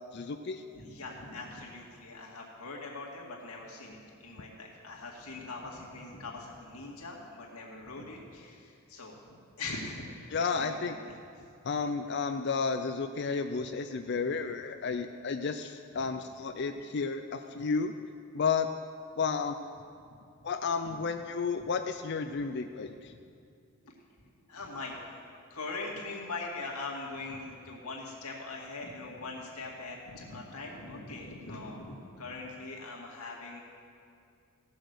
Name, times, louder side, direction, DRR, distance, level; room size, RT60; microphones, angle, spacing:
voice 1, 0.1-0.6 10.3-10.9 11.6-17.9 18.3-18.7 19.2-19.6 20.4-23.1, left 5 dB, 50° left, 7 dB, 0.4 m, -32 dB
voice 2, 0.7-11.5 14.2-14.3 16.0-16.1 20.8-21.0 21.6-21.7 22.3-22.4 23.8-23.9 24.5-25.0 25.5-33.6, left 3 dB, 80° left, -2 dB, 2.1 m, -42 dB
17.0 x 6.3 x 6.6 m, 2.4 s
head